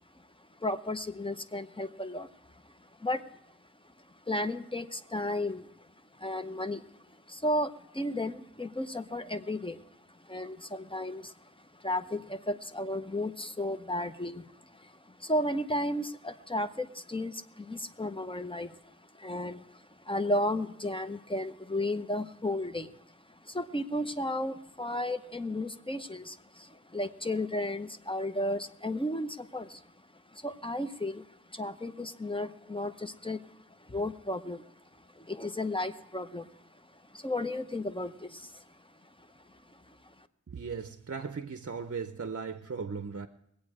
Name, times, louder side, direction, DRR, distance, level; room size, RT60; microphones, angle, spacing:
voice 1, 0.6-2.3 2.6-2.7 3.0-3.2 4.3-5.7 6.2-6.9 7.3-9.8 10.2-22.9 23.3-29.8 30.3-33.5 33.8-34.7 35.1-36.5 37.1-38.6 39.5-39.9, left 1 dB, 15° left, 0.7 m, -34 dB
voice 2, 40.5-43.3, right 5 dB, 55° right, 0.6 m, -37 dB
21.5 x 8.5 x 4.8 m
wide cardioid pair, 50°, 30 cm